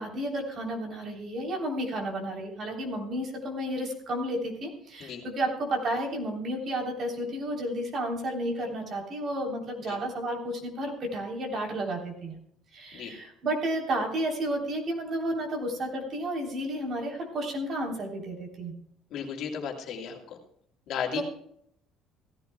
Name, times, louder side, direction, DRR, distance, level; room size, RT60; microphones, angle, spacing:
voice 1, 0.0-12.4 12.7-18.7 21.1-21.2, right 1 dB, 40° right, 1 dB, 3.4 m, -32 dB
voice 2, 19.1-20.4 20.9-21.2, left 7 dB, 55° left, 1 dB, 2.6 m, -34 dB
17.0 x 15.0 x 2.2 m, 0.70 s
cardioid pair, 155°, 0 cm